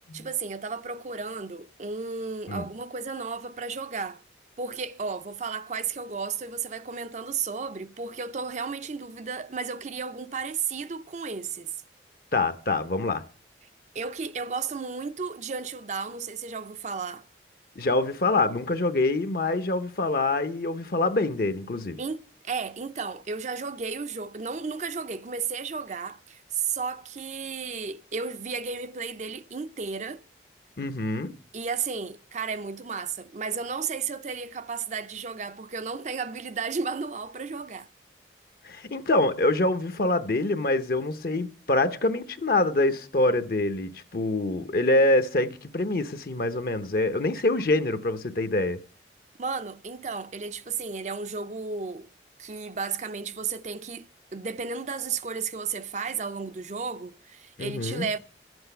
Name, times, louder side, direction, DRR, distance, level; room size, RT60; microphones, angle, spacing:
voice 1, 0.1-4.2 4.6-11.7 13.9-17.3 22.0-30.2 31.5-37.9 49.4-52.1 52.4-58.2, right 5 dB, 40° right, 0.5 m, -33 dB
voice 2, 12.3-13.2 17.8-22.0 30.8-31.3 38.6-48.8 57.6-58.1, left 2 dB, 55° left, 0.7 m, -25 dB
12.0 x 8.0 x 6.7 m
head